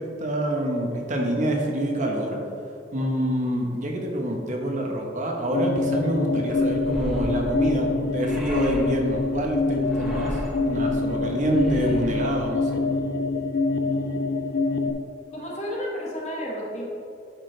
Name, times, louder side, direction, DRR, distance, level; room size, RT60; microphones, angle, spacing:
voice 1, 0.0-2.4 2.9-12.8, right 1 dB, 45° right, 0 dB, 1.0 m, -26 dB
sound 1, 5.5-14.9, left 3 dB, 60° left, 0.5 m, -25 dB
sound 2, 6.5-12.4, equal, ahead, 1.1 m, -36 dB
voice 2, 15.3-16.9, equal, 40° left, -3 dB, 1.6 m, -31 dB
10.5 x 6.1 x 3.3 m, 2.6 s
head